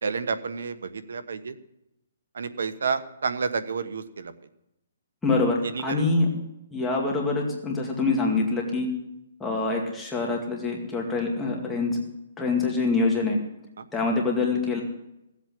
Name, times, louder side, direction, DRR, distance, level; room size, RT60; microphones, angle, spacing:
voice 1, 0.0-1.5 2.3-4.3 5.7-6.1 13.8-13.9, right 5 dB, 80° right, 12 dB, 1.2 m, -30 dB
voice 2, 5.2-6.3 6.7-8.9 9.4-12.0 12.4-13.4 13.9-14.8, left 3 dB, 5° left, -2 dB, 2.2 m, -25 dB
16.5 x 8.0 x 7.7 m, 0.87 s
hypercardioid pair, 170°, 0 cm